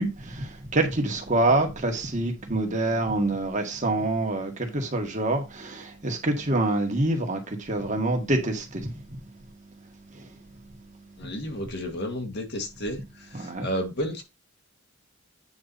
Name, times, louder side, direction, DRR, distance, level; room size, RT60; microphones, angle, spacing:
voice 1, 0.0-9.2 10.1-10.3 13.3-13.7, right 2 dB, 35° right, 1.8 m, -26 dB
voice 2, 11.2-13.0 13.6-14.2, equal, 55° left, 1.7 m, -31 dB
8.8 x 4.7 x 4.2 m
head